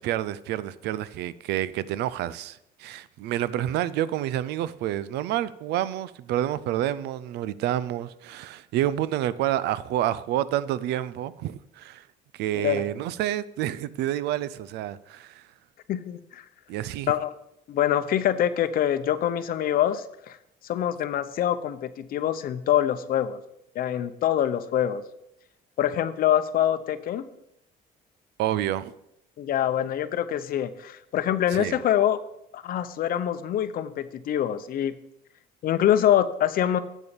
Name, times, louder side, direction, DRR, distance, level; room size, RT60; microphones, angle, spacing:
voice 1, 0.0-12.0 12.3-15.4 16.7-17.1 28.4-28.9 31.5-31.8, right 12 dB, 80° right, 0.5 m, -28 dB
voice 2, 15.9-16.4 17.1-17.3 17.7-20.4 20.6-23.4 23.7-25.0 25.8-27.2 29.4-32.2 32.5-34.9 35.6-36.8, left 11 dB, 60° left, 0.7 m, -25 dB
8.3 x 7.0 x 5.1 m
cardioid pair, 110°, 17 cm